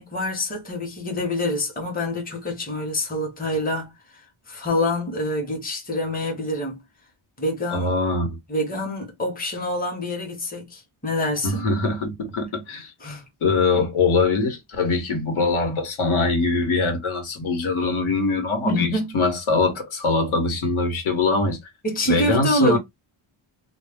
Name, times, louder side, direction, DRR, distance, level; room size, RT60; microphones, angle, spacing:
voice 1, 0.0-6.8 7.4-7.9 8.5-11.6 13.0-13.2 18.6-19.1 21.8-22.8, left 1 dB, 15° left, 0.8 m, -26 dB
voice 2, 7.7-8.4 11.4-12.9 13.4-18.9 19.1-21.6 22.1-22.8, left 3 dB, 75° left, 1.1 m, -22 dB
2.2 x 2.0 x 3.4 m
wide cardioid pair, 165°, 50 cm